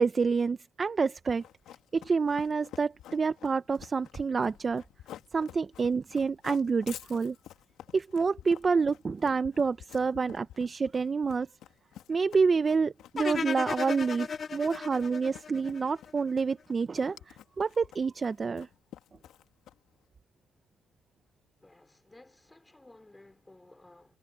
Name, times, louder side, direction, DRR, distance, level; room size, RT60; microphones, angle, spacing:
voice 1, 0.0-1.4 1.9-4.8 5.3-7.4 7.9-11.5 12.1-18.7, right 5 dB, 35° right, 0.6 m, -28 dB
Run, 1.3-20.0, left 11 dB, 80° left, 2.3 m, -50 dB
sound 1, 13.2-16.3, left 6 dB, 45° left, 3.8 m, -35 dB
voice 2, 21.6-24.2, left 2 dB, 15° left, 4.3 m, -56 dB
cardioid pair, 100°, 0 cm